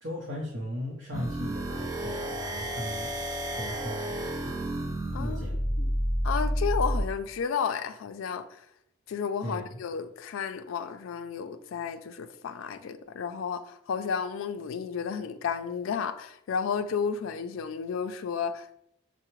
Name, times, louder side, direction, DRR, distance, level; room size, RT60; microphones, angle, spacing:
voice 1, 0.0-3.1 3.6-4.2 4.4-4.5 5.2-5.7 9.4-9.8, equal, 60° right, 0.7 m, -37 dB
sound 1, 1.1-7.1, equal, 15° right, 0.3 m, -30 dB
voice 2, 5.1-5.4 5.8-5.9 6.2-8.6 9.1-18.8, left 6 dB, 80° left, 0.3 m, -32 dB
5.6 x 2.0 x 3.0 m
head